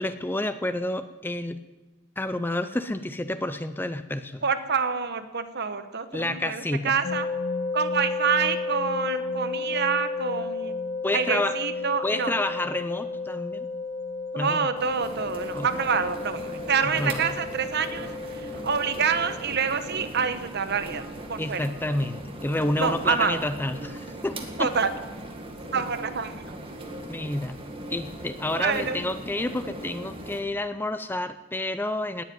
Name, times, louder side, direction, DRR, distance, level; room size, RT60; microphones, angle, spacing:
voice 1, 0.0-1.6 2.2-4.4 6.1-6.9 11.0-11.6 12.0-13.7 14.4-14.7 15.5-15.7 16.8-17.2 21.4-24.7 25.7-25.8 27.1-27.6 27.9-32.2, left 1 dB, 10° left, 11 dB, 0.4 m, -29 dB
voice 2, 4.4-7.3 7.7-10.7 11.1-12.3 14.3-21.0 21.3-21.6 22.8-23.4 24.6-24.9 25.7-26.3 28.5-29.0, right 6 dB, 50° right, 10 dB, 1.1 m, -27 dB
sound 1, 7.0-19.4, left 3 dB, 50° left, 1.6 m, -33 dB
sound 2, 14.8-30.4, right 1 dB, 25° right, 1.9 m, -39 dB
19.0 x 7.9 x 9.3 m, 1.2 s
head